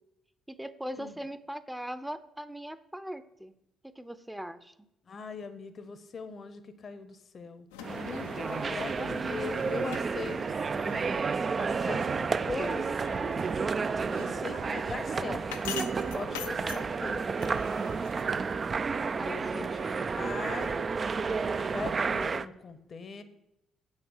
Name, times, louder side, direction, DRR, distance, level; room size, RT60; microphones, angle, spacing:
voice 1, 0.5-3.5 3.8-4.7 8.3-9.7 14.2-14.6 16.5-17.2 19.1-20.2, equal, 5° right, 13 dB, 0.7 m, -41 dB
voice 2, 5.1-11.1 11.6-13.5 14.2-15.8 16.1-17.6 19.2-19.9 20.2-20.9 21.3-23.2, left 5 dB, 45° left, 12 dB, 0.8 m, -41 dB
sound 1, 7.7-18.3, left 8 dB, 85° left, 0.6 m, -46 dB
sound 2, 7.8-22.5, right 5 dB, 40° right, 0.4 m, -31 dB
7.9 x 6.5 x 6.3 m, 0.87 s
hypercardioid pair, 50°, 0 cm